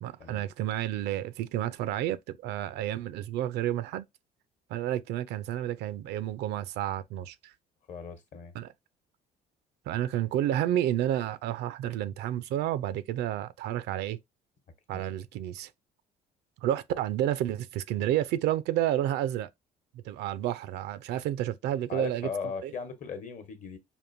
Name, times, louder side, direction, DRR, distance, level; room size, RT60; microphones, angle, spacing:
voice 1, 0.0-2.2 2.4-4.0 4.7-7.5 8.5-8.7 9.9-14.2 14.9-15.7 16.6-19.5 20.0-22.3 22.6-22.7, right 12 dB, 80° right, 0.5 m, -30 dB
voice 2, 7.9-8.5 14.9-15.0 21.9-23.8, left 5 dB, 45° left, 1.0 m, -38 dB
5.2 x 2.6 x 2.6 m
cardioid pair, 110°, 17 cm